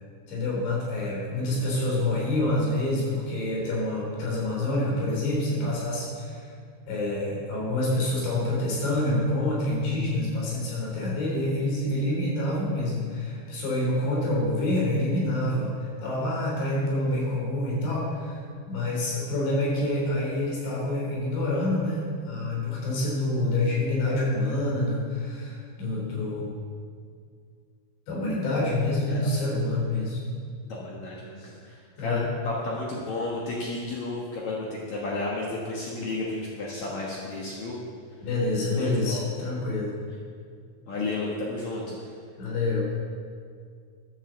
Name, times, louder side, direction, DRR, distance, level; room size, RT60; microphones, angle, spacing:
voice 1, 0.3-6.4 6.9-18.4 18.7-26.5 28.1-30.2 32.0-32.2 38.2-39.9 42.4-42.9, left 1 dB, 65° left, -4 dB, 5.7 m, -27 dB
voice 2, 30.6-37.8 38.7-39.2 40.9-42.1, left 2 dB, 80° left, -4 dB, 1.6 m, -32 dB
12.5 x 7.6 x 7.1 m, 2.1 s
omnidirectional pair, 5.5 m